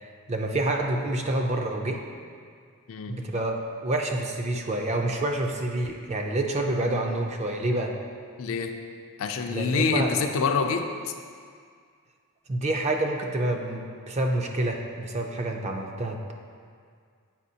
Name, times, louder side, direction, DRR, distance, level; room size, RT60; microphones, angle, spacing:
voice 1, 0.0-2.0 3.1-3.6 3.8-7.9 9.5-10.1 12.5-16.3, right 1 dB, 30° right, 2 dB, 0.4 m, -28 dB
voice 2, 8.4-8.7 9.2-11.1, left 5 dB, 65° left, 6 dB, 0.4 m, -26 dB
7.3 x 5.0 x 2.7 m, 2.1 s
head